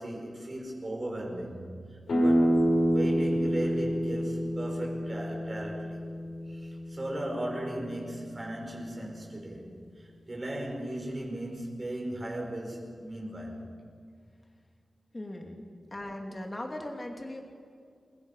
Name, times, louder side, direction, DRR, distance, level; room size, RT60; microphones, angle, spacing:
voice 1, 0.0-6.0 6.5-13.7, right 1 dB, 30° right, -1 dB, 5.6 m, -37 dB
sound 1, 2.1-7.7, equal, 70° left, 7.1 m, -28 dB
voice 2, 15.1-15.6 15.9-17.4, left 1 dB, 25° left, 2 dB, 2.7 m, -38 dB
28.0 x 22.0 x 5.7 m, 2.2 s
wide cardioid pair, 140°, 0 cm